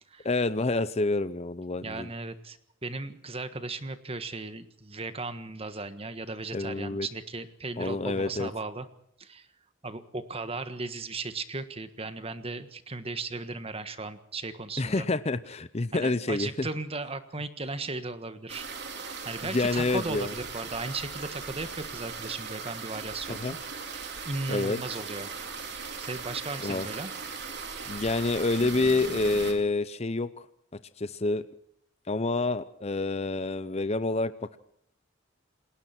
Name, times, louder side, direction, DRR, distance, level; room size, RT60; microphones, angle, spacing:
voice 1, 0.2-2.1 6.5-7.1 7.8-8.5 14.8-16.7 19.5-20.3 23.3-23.6 24.5-24.8 26.6-26.9 27.9-30.5 31.0-31.4 32.1-34.6, left 2 dB, 30° left, 14 dB, 0.7 m, -28 dB
voice 2, 1.8-2.6 2.8-8.9 9.2-9.5 9.8-15.1 15.9-18.7 19.2-23.6 23.9-25.3 26.0-27.1, right 3 dB, 30° right, 11 dB, 1.5 m, -36 dB
sound 1, 18.5-29.5, right 5 dB, 55° right, 4.1 m, -38 dB
28.5 x 20.0 x 4.5 m, 0.70 s
head